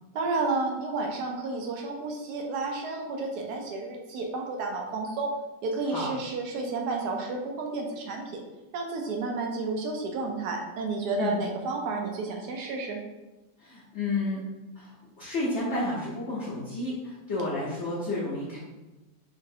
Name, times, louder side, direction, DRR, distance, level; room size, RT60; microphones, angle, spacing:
voice 1, 0.1-5.3 5.6-8.4 8.7-13.0, right 3 dB, 75° right, 1 dB, 0.9 m, -31 dB
voice 2, 13.6-14.4 14.8-18.6, left 2 dB, 60° left, -7 dB, 0.7 m, -31 dB
3.9 x 3.0 x 2.7 m, 1.1 s
omnidirectional pair, 2.1 m